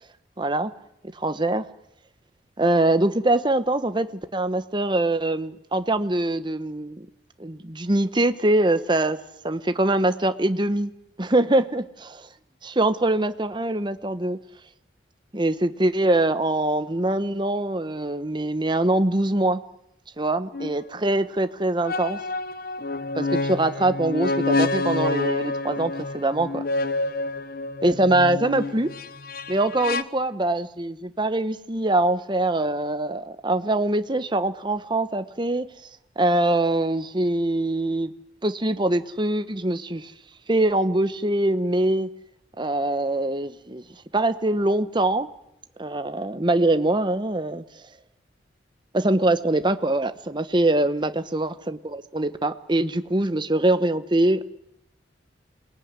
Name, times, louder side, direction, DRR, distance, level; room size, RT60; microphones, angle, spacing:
voice 1, 0.4-0.7 1.1-1.6 2.6-7.1 7.4-9.2 9.4-10.9 11.2-12.3 12.6-14.4 15.3-19.6 20.2-22.2 23.2-26.6 27.8-28.9 29.5-35.7 36.2-38.1 38.4-40.1 40.5-42.1 42.6-43.8 44.1-45.3 45.8-47.6 48.9-54.4, right 1 dB, 25° right, 10 dB, 1.1 m, -23 dB
sound 1, 20.5-20.7 21.8-30.0, left 3 dB, 50° left, 1.0 m, -28 dB
28.0 x 19.5 x 9.7 m, 0.80 s
head